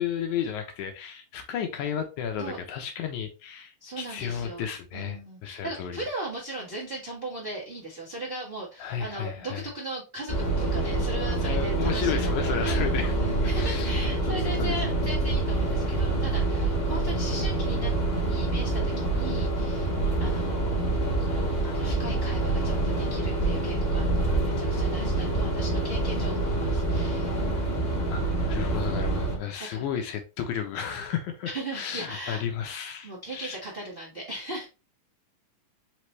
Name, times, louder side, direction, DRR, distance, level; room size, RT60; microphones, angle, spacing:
voice 1, 0.0-6.0 8.8-9.7 11.4-13.2 13.4-13.9 14.3-14.9 28.1-33.6, left 8 dB, 75° left, 1.9 m, -33 dB
voice 2, 3.8-4.7 4.9-12.9 13.2-17.9 18.2-20.9 21.2-27.4 29.6-29.8 31.4-32.4 33.0-34.7, right 1 dB, 75° right, 0.5 m, -38 dB
sound 1, 10.3-29.4, right 2 dB, 35° left, 1.0 m, -26 dB
5.1 x 3.1 x 3.1 m
omnidirectional pair, 3.8 m